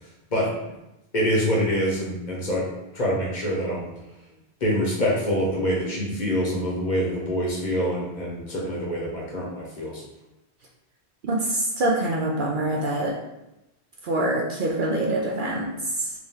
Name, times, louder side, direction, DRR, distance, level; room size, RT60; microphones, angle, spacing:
voice 1, 1.1-2.6 2.9-3.9 4.6-10.0, equal, 45° left, -4 dB, 1.0 m, -25 dB
voice 2, 11.2-13.2 14.0-16.1, right 1 dB, 60° right, -1 dB, 0.6 m, -25 dB
3.2 x 3.0 x 3.6 m, 0.94 s
omnidirectional pair, 1.1 m